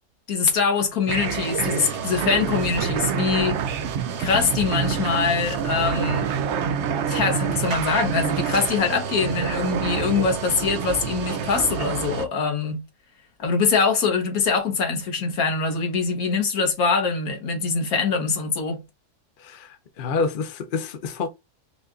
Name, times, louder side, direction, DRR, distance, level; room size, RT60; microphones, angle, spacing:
voice 1, 0.3-3.6 4.2-6.3 7.1-12.8 13.4-18.8, left 5 dB, 70° left, 1.6 m, -23 dB
sound 1, 1.1-12.3, right 7 dB, 60° right, 0.7 m, -27 dB
voice 2, 19.4-21.3, left 4 dB, 50° left, 0.6 m, -28 dB
5.5 x 2.5 x 2.4 m
omnidirectional pair, 1.6 m